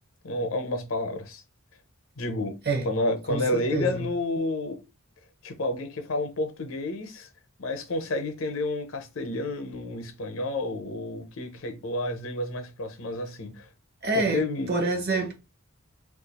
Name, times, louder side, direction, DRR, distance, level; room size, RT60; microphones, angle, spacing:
voice 1, 0.2-1.4 2.2-2.6 2.8-4.8 5.4-7.3 7.6-13.7 14.1-14.7, left 2 dB, 70° left, 0.6 m, -30 dB
voice 2, 3.3-4.1 14.0-15.3, right 3 dB, 45° right, 0.7 m, -27 dB
2.4 x 2.3 x 4.0 m
head